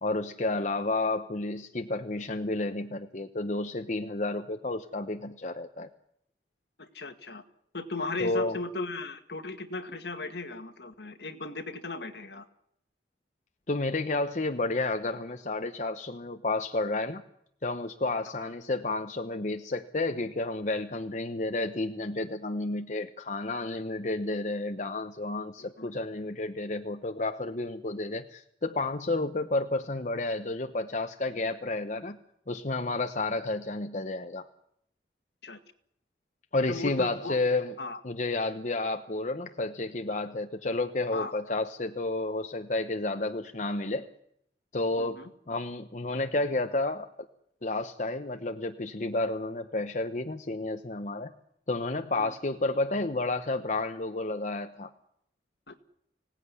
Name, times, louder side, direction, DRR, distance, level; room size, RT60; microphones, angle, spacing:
voice 1, 0.0-5.9 8.2-8.6 13.7-17.2 17.6-32.2 32.5-34.5 36.5-37.7 38.0-44.1 44.7-45.2 45.5-47.1 47.6-51.3 51.7-54.9, left 2 dB, 45° left, 7 dB, 0.9 m, -31 dB
voice 2, 6.8-7.4 7.7-12.5 18.3-18.5 25.8-25.9 35.4-35.6 36.7-37.4 37.8-38.0 41.1-41.4 45.0-45.3 52.2-52.3 55.7-55.8, left 3 dB, 70° left, 7 dB, 1.9 m, -37 dB
25.0 x 17.5 x 9.8 m, 0.76 s
head